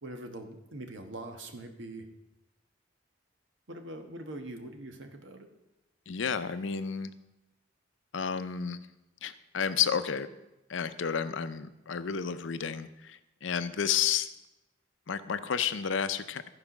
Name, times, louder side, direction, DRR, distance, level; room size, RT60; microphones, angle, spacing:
voice 1, 0.0-2.1 3.7-5.5, right 1 dB, 85° right, 5 dB, 1.3 m, -43 dB
voice 2, 6.1-7.1 8.1-8.8 9.2-10.3 10.7-14.3 15.1-16.5, left 7 dB, 85° left, 12 dB, 0.6 m, -31 dB
14.0 x 4.9 x 6.0 m, 0.95 s
head